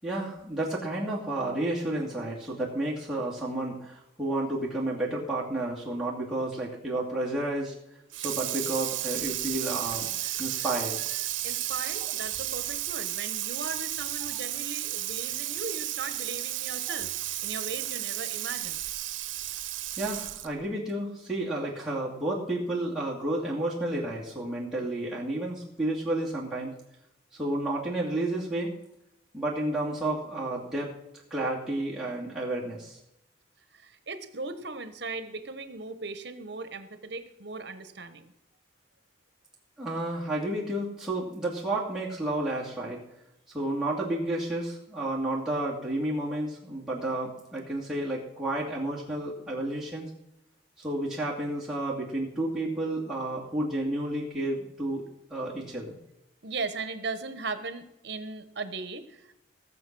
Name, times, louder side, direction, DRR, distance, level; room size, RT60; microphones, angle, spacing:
voice 1, 0.0-7.7 8.2-11.3 20.0-26.7 27.3-28.7 29.3-30.9 31.3-33.0 39.8-43.0 43.5-50.1 50.8-55.0 55.3-56.0, right 1 dB, 5° right, -7 dB, 2.5 m, -31 dB
Water tap faucet / Sink (filling or washing), 8.1-20.6, right 14 dB, 85° right, 0.8 m, -33 dB
voice 2, 11.4-18.8 33.7-38.3 56.4-59.3, right 3 dB, 60° right, 11 dB, 1.1 m, -38 dB
17.0 x 6.9 x 6.1 m, 0.86 s
head